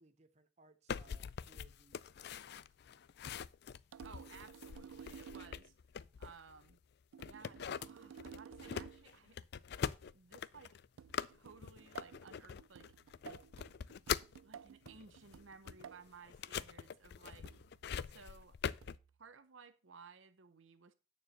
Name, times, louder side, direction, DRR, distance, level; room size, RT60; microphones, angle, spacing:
voice 1, 0.0-2.7, right 2 dB, 35° right, 0.8 m, -66 dB
sound 1, 0.9-6.7 7.2-14.4 14.9-19.0, left 7 dB, 55° left, 0.3 m, -43 dB
sound 2, 3.9-5.7 7.1-9.1 11.0-16.1 17.4-17.8 18.8-19.1, right 8 dB, 85° right, 0.3 m, -54 dB
voice 2, 4.0-5.7 6.2-6.8 7.2-9.4 9.8-10.8 11.3-12.9 14.4-17.6 18.0-18.6 19.2-20.9, right 5 dB, 70° right, 0.8 m, -58 dB
9.5 x 4.7 x 6.5 m
head